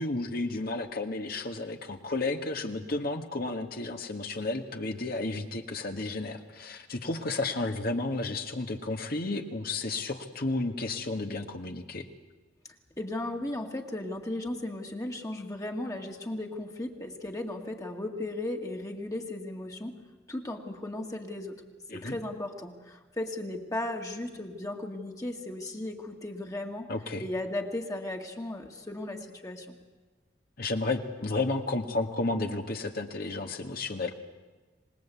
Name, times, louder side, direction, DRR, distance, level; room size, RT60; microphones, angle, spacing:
voice 1, 0.0-12.1 21.9-22.2 26.9-27.2 30.6-34.1, left 2 dB, 55° left, 5 dB, 1.7 m, -32 dB
voice 2, 13.0-20.0 20.3-21.6 21.9-26.9 27.2-29.8, left 1 dB, 20° left, 2 dB, 1.9 m, -36 dB
26.5 x 19.5 x 8.4 m, 1.3 s
head